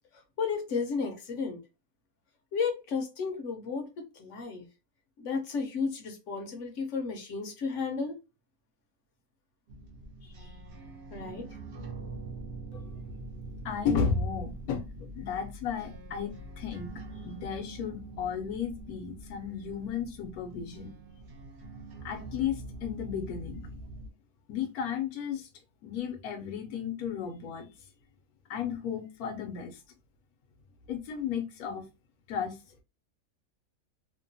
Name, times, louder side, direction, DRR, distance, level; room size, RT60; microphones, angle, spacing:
voice 1, 0.1-1.6 2.5-4.7 5.2-8.2 10.2-10.5 11.1-11.6, left 5 dB, 65° left, 0.9 m, -33 dB
sound 1, 9.7-24.1, right 2 dB, 60° right, 0.8 m, -44 dB
voice 2, 13.6-21.0 22.0-23.7 24.5-25.5 25.8-27.7 28.5-29.8 30.9-31.9 32.3-32.6, left 7 dB, 80° left, 1.1 m, -34 dB
2.8 x 2.1 x 2.6 m
omnidirectional pair, 1.5 m